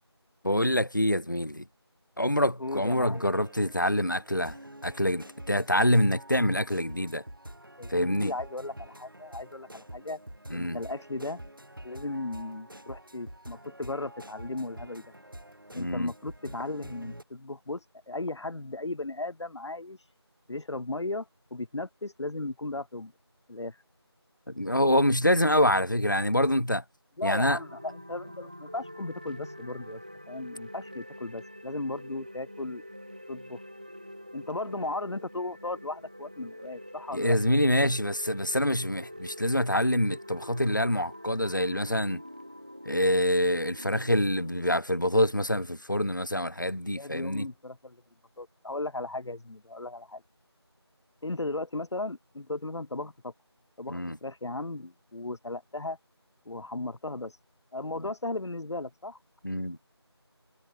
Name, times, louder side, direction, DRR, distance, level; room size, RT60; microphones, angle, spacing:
voice 1, 0.4-1.7 2.2-7.2 7.9-8.3 10.5-10.8 15.8-16.1 24.5-26.8 27.2-27.6 37.1-42.2 42.9-47.5 53.9-54.2 58.0-58.1 59.4-59.8, left 1 dB, 45° left, 0.7 m, -26 dB
voice 2, 2.6-3.3 7.8-10.2 10.5-11.4 11.8-15.0 15.7-20.0 20.5-23.1 23.5-23.8 27.2-32.8 33.3-33.6 34.3-37.4 46.9-48.0 48.4-50.2 51.2-53.3 53.8-56.0 56.5-57.3 57.7-59.2, left 2 dB, 85° left, 0.6 m, -36 dB
sound 1, 2.6-17.2, right 1 dB, 50° right, 1.2 m, -47 dB
sound 2, 27.3-44.8, equal, 20° right, 1.5 m, -45 dB
figure-of-eight pair, 175°, 14 cm